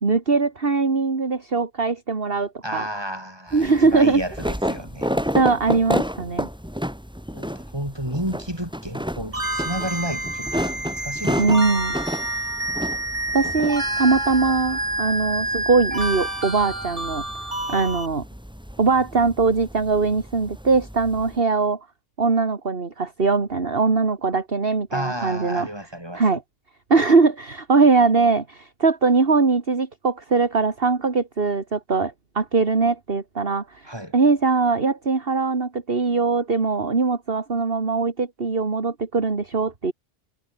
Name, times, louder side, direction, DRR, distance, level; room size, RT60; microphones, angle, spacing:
voice 1, 0.0-2.8 3.5-4.2 5.3-6.5 11.4-11.9 13.3-17.2 17.7-18.2 18.8-21.8 22.2-25.7 26.1-26.4 26.9-33.8 34.1-39.9, right 4 dB, 50° right, 2.3 m, -21 dB
voice 2, 2.6-5.3 7.3-11.5 17.6-17.9 24.9-26.2 33.8-34.2, equal, 20° right, 8.2 m, -32 dB
sound 1, 3.5-21.4, equal, 5° right, 3.8 m, -31 dB
sound 2, 9.3-18.1, right 1 dB, 70° right, 7.2 m, -28 dB
omnidirectional pair, 1.2 m